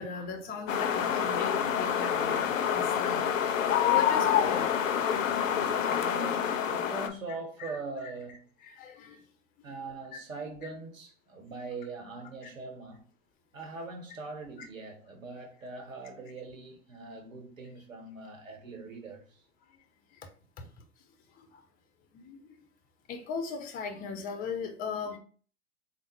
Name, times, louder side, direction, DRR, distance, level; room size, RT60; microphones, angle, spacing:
voice 1, 0.0-4.7 7.6-7.7 8.6-9.2 10.1-10.2 20.6-20.7 21.4-21.6 22.1-22.5 23.1-25.2, left 5 dB, 25° left, 0.5 m, -38 dB
sound 1, 0.7-7.1, left 9 dB, 80° left, 0.5 m, -27 dB
voice 2, 5.8-8.5 9.6-13.0 13.5-19.4, right 3 dB, 85° right, 0.9 m, -42 dB
3.4 x 2.1 x 3.0 m
figure-of-eight pair, 95°, 38 cm